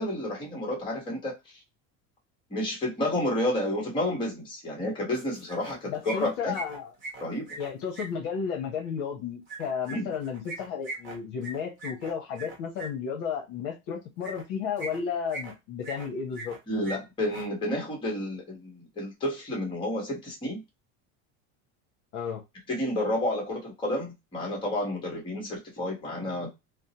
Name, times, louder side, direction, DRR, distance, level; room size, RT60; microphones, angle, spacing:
voice 1, 0.0-1.6 2.5-6.6 7.2-7.5 9.9-10.1 16.7-20.6 22.7-26.5, left 1 dB, 10° left, 1.0 m, -30 dB
sound 1, 5.1-5.8 6.0-8.1 9.5-12.9 14.2-14.4 14.8-15.5 15.8-16.6 16.8-17.0 17.2-17.5, right 3 dB, 30° right, 0.9 m, -40 dB
voice 2, 5.9-6.9 7.6-16.9 22.1-22.4, left 7 dB, 55° left, 0.8 m, -33 dB
2.7 x 2.0 x 2.7 m
cardioid pair, 165°, 40 cm